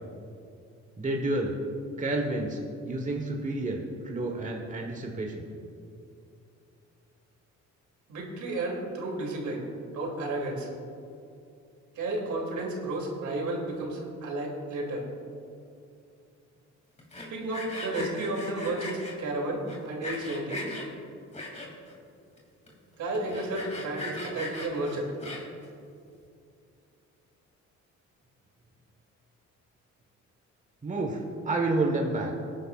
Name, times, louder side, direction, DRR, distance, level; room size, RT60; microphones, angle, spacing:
voice 1, 1.0-1.5 2.0-5.5 30.8-32.3, right 2 dB, 25° right, 1 dB, 1.3 m, -30 dB
voice 2, 8.1-9.6 9.9-10.7 11.9-15.0 17.3-20.7 23.0-25.1, right 2 dB, 75° right, -1 dB, 2.8 m, -32 dB
Sawing, 17.0-19.1 19.7-20.9 21.3-21.9 22.4-22.5 22.7-22.8 23.1-25.6, left 2 dB, 20° left, 2.7 m, -38 dB
19.0 x 10.5 x 2.5 m, 2.6 s
cardioid pair, 90°, 30 cm